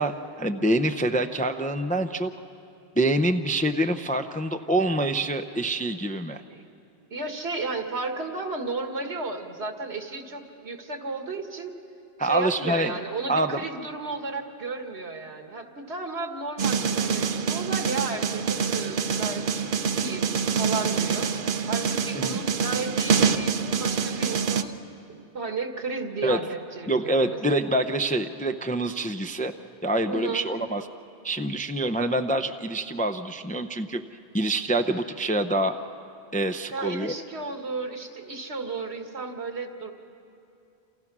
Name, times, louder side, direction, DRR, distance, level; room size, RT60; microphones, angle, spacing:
voice 1, 0.0-2.3 3.0-6.4 12.2-12.9 13.3-13.6 22.2-22.4 26.2-26.4 26.9-29.5 29.8-30.8 31.2-34.0 34.3-35.7 36.3-37.1, right 1 dB, 10° left, 7 dB, 0.5 m, -26 dB
voice 2, 7.1-11.7 12.2-21.3 21.7-24.8 25.1-27.6 30.1-30.5 36.7-39.9, right 3 dB, 75° right, 5 dB, 2.0 m, -33 dB
sound 1, 16.6-24.6, right 6 dB, 55° right, 0.9 m, -26 dB
28.5 x 28.0 x 6.1 m, 2.6 s
omnidirectional pair, 1.1 m